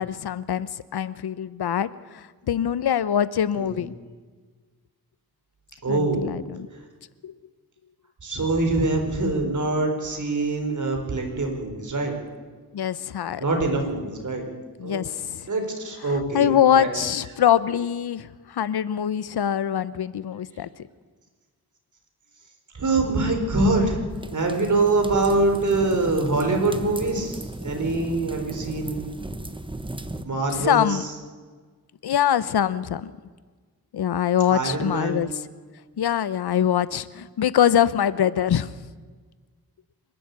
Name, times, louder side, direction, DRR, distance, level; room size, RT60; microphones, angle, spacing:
voice 1, 0.0-3.9 5.9-6.7 7.2-7.3 12.7-13.4 14.8-15.5 16.3-20.7 30.5-31.1 32.0-33.1 33.9-35.3 36.0-38.7, left 9 dB, 90° left, 17 dB, 0.8 m, -23 dB
voice 2, 5.8-6.2 8.2-12.2 13.4-14.5 14.8-15.1 15.5-17.0 22.7-24.0 24.3-29.0 30.2-31.0 34.5-35.2, right 2 dB, 50° right, 3 dB, 4.3 m, -24 dB
sound 1, 24.1-30.2, right 2 dB, 15° right, 1.1 m, -36 dB
25.5 x 12.0 x 8.3 m, 1.5 s
wide cardioid pair, 110°, 38 cm